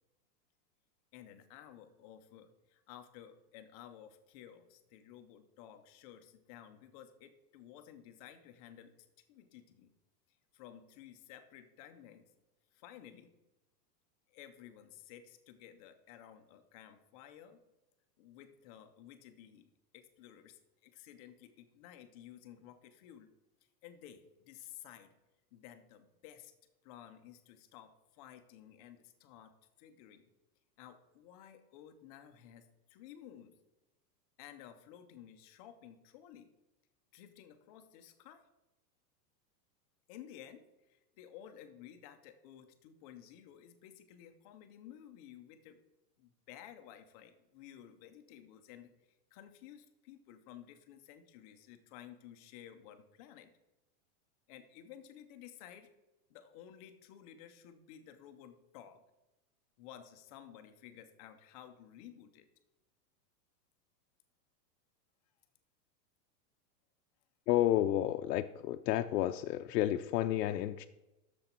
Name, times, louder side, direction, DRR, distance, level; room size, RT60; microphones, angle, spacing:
voice 1, 1.1-9.9 10.5-12.3 12.7-13.3 14.3-17.6 18.2-23.3 23.8-25.1 25.5-26.5 26.8-30.2 30.8-33.5 34.4-36.5 37.1-38.4 40.1-45.8 46.2-53.5 54.5-55.9 56.3-59.0 59.8-62.5, left 10 dB, 25° left, 8 dB, 0.5 m, -54 dB
voice 2, 67.5-70.9, left 13 dB, 80° left, 6 dB, 0.6 m, -31 dB
10.5 x 7.0 x 4.3 m, 1.0 s
supercardioid pair, 155°, 49 cm